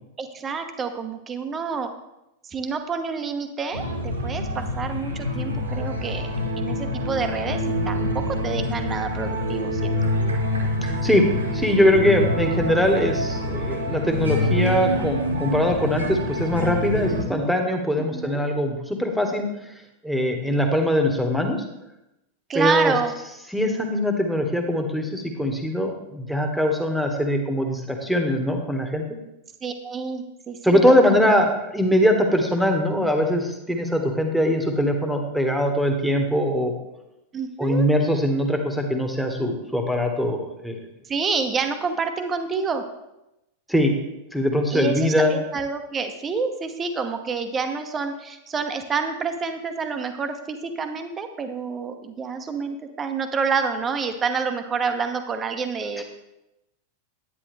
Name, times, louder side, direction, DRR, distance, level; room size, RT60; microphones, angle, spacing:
voice 1, 0.2-1.9 2.4-6.3 6.6-10.1 17.3-17.5 18.0-18.4 22.5-23.1 29.6-30.8 31.1-31.2 37.3-37.9 41.1-42.8 44.7-56.0, right 5 dB, 20° right, 7 dB, 1.0 m, -28 dB
sound 1, 3.7-17.2, left 1 dB, 75° right, 1.8 m, -26 dB
voice 2, 10.8-11.2 11.5-19.5 20.0-21.6 22.5-22.9 23.5-29.0 30.6-36.7 37.6-40.7 43.7-43.9 44.3-45.4 56.0-56.1, equal, ahead, 4 dB, 1.5 m, -22 dB
10.0 x 9.6 x 3.4 m, 0.90 s
figure-of-eight pair, 90°, 0 cm